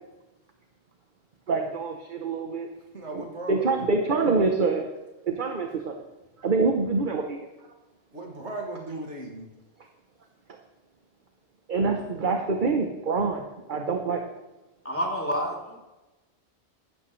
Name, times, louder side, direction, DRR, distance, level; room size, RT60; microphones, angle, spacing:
voice 1, 1.5-2.7 3.1-3.2 3.5-4.8 5.3-5.9 6.4-7.5 11.7-13.4 13.7-14.2, right 4 dB, 45° right, 4 dB, 1.2 m, -25 dB
voice 2, 2.9-3.9 8.1-9.5, right 2 dB, 90° right, 0 dB, 2.6 m, -37 dB
voice 3, 14.8-15.8, equal, 10° left, -3 dB, 3.5 m, -29 dB
15.5 x 13.0 x 3.3 m, 1.1 s
omnidirectional pair, 1.1 m